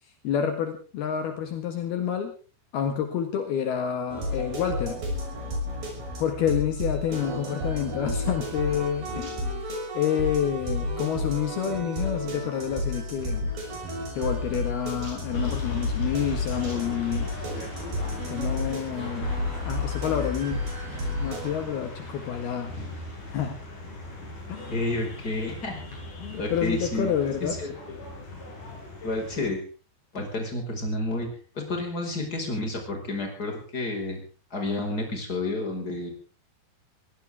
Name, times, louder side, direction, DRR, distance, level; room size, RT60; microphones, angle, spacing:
voice 1, 0.2-2.3 2.7-5.0 6.2-9.4 9.9-13.5 14.2-17.3 18.3-19.3 19.7-20.7 21.2-22.7 23.3-23.7 24.5-24.7 26.2-27.5, left 9 dB, 70° left, 6 dB, 3.6 m, -28 dB
sound 1, 4.1-21.6, left 1 dB, 55° right, 7.9 m, -32 dB
sound 2, 15.3-29.5, left 2 dB, 50° left, 8.3 m, -38 dB
voice 2, 24.7-25.8 26.3-27.1 27.4-28.0 29.0-29.6 30.1-34.2 34.5-36.1, left 2 dB, 20° left, 3 dB, 5.4 m, -30 dB
22.5 x 17.0 x 3.6 m, 0.37 s
omnidirectional pair, 4.8 m